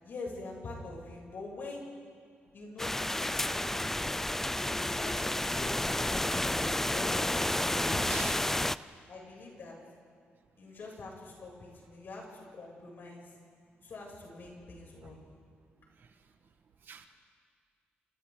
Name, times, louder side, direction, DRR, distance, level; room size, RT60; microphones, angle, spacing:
voice 1, 0.0-1.9 2.5-3.9 4.7-6.5 6.9-8.3 9.1-9.7 10.6-13.3 13.8-15.2, left 3 dB, 55° left, -2 dB, 7.4 m, -44 dB
sound 1, 2.8-8.8, left 1 dB, 10° left, 0.5 m, -31 dB
voice 2, 3.3-3.7 5.0-5.1 8.1-8.4 15.0-15.1 16.0-16.1 16.8-17.1, right 6 dB, 60° right, 5 dB, 1.7 m, -46 dB
28.5 x 28.5 x 4.0 m, 2.1 s
cardioid pair, 100°, 4 cm